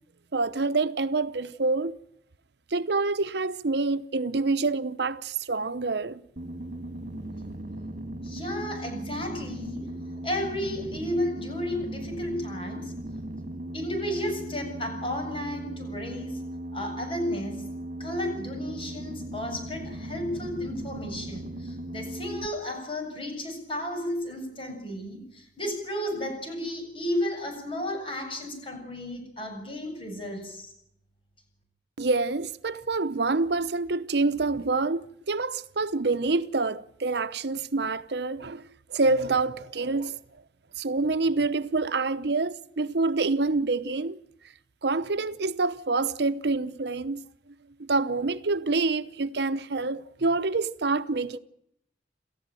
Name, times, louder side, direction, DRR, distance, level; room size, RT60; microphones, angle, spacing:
voice 1, 0.3-2.0 2.7-6.2 32.0-38.6 38.9-40.2 40.8-44.2 44.8-47.2 47.8-51.4, right 3 dB, 70° right, 0.8 m, -27 dB
sound 1, 6.4-22.5, right 1 dB, 50° right, 2.6 m, -38 dB
voice 2, 8.2-9.9 10.2-12.9 13.7-16.4 16.7-17.7 18.0-30.7, left 1 dB, 30° left, 7.5 m, -33 dB
28.5 x 14.5 x 9.1 m
head